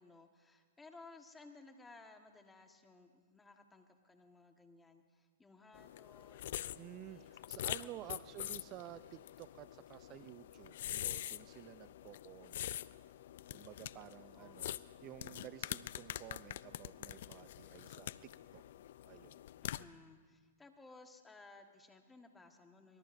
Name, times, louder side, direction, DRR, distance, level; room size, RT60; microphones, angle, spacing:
voice 1, 0.0-7.3 7.8-8.4 14.3-14.9 19.6-23.0, left 3 dB, 10° left, 5 dB, 1.4 m, -59 dB
Slurping Applesauce, 5.7-19.8, left 12 dB, 60° left, 0.4 m, -45 dB
voice 2, 6.8-12.8 13.5-18.6 19.1-19.4, right 14 dB, 35° right, 14 dB, 0.4 m, -53 dB
25.0 x 20.0 x 2.6 m, 1.5 s
hypercardioid pair, 125°, 0 cm